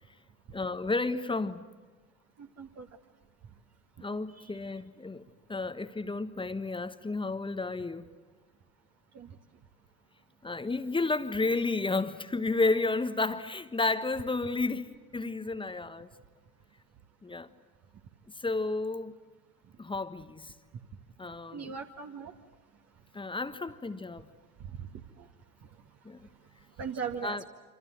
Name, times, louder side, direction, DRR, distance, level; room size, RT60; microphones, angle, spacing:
voice 1, 0.5-1.6 4.0-8.1 10.4-16.1 17.2-17.5 18.4-19.1 19.8-20.5 21.2-21.7 23.1-24.3 26.0-26.3 27.2-27.5, left 3 dB, 10° left, 1.4 m, -32 dB
voice 2, 21.5-22.3 25.2-25.3 26.8-27.5, right 6 dB, 35° right, 2.1 m, -38 dB
27.5 x 26.5 x 7.8 m
figure-of-eight pair, 75°, 43 cm